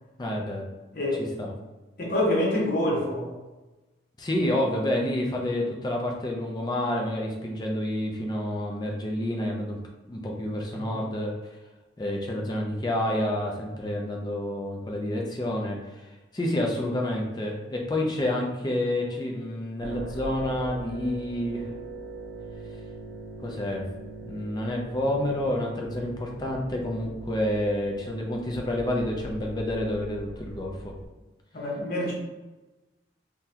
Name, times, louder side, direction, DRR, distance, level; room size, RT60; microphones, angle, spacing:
voice 1, 0.2-0.6 1.4-1.5 4.2-9.8 10.1-11.4 12.0-21.7 23.4-23.9 24.3-30.9, left 1 dB, 20° left, 0 dB, 0.4 m, -29 dB
voice 2, 0.9-1.2 2.0-3.3 4.3-4.5 10.7-10.9 31.5-32.1, left 1 dB, 50° left, -4 dB, 1.0 m, -26 dB
sound 1, 19.8-31.1, right 2 dB, 70° right, 0.5 m, -41 dB
3.8 x 2.2 x 2.8 m, 1.1 s
head